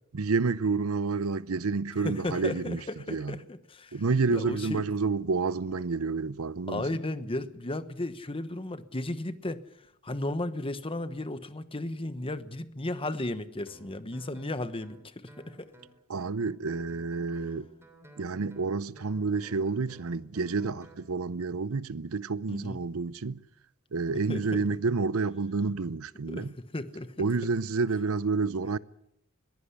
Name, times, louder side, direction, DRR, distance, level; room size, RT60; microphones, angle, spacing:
voice 1, 0.1-2.8 3.1-3.3 3.9-6.8 16.1-17.7 18.2-23.4 23.9-26.5 27.2-28.8, right 4 dB, 80° right, 0.7 m, -29 dB
voice 2, 2.0-4.0 4.3-4.9 6.7-9.6 10.0-15.7 22.5-22.8 24.3-24.7 26.3-27.1, left 1 dB, 25° left, 1.1 m, -35 dB
Guitar, 13.7-21.0, right 1 dB, 10° right, 3.3 m, -55 dB
21.5 x 16.0 x 8.2 m
head